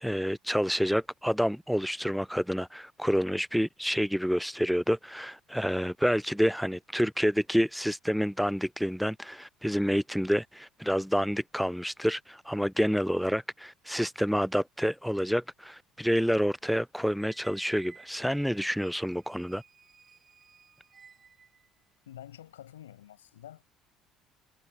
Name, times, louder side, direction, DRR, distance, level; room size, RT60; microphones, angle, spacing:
voice 1, 0.0-19.6, equal, ahead, 0.3 m, -28 dB
Squeak, 17.2-21.7, right 6 dB, 35° right, 6.4 m, -55 dB
voice 2, 22.1-23.6, left 11 dB, 85° left, 5.0 m, -48 dB
hypercardioid pair, 60°, 0 cm